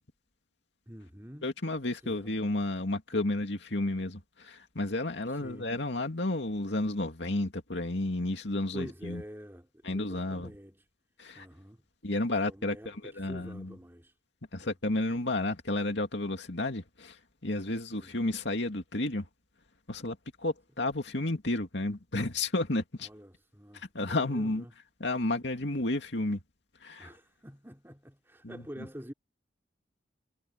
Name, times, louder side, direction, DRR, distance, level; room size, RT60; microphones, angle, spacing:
voice 1, 0.9-1.5 1.9-2.4 5.3-5.7 8.7-10.9 11.4-11.8 12.4-14.2 14.6-14.7 17.8-18.1 23.0-24.7 27.0-29.1, equal, 10° right, 3.7 m, -47 dB
voice 2, 1.4-9.2 9.8-10.5 11.2-11.5 12.0-13.7 14.5-19.3 19.9-23.1 23.7-24.6 25.0-26.4 26.8-27.1 28.4-28.5, left 2 dB, 70° left, 2.4 m, -32 dB
head